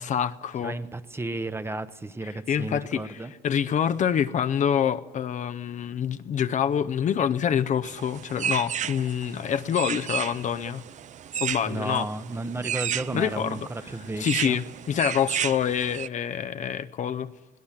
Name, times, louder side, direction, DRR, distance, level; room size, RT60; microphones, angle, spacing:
voice 1, 0.0-0.8 2.5-10.8 11.4-12.1 13.1-13.6 14.2-17.3, left 8 dB, 45° left, 0.7 m, -26 dB
voice 2, 0.6-3.3 11.7-14.6, right 2 dB, 15° right, 0.8 m, -33 dB
sound 1, 7.8-16.1, right 9 dB, 45° right, 0.6 m, -33 dB
21.5 x 17.0 x 7.4 m
cardioid pair, 110°, 17 cm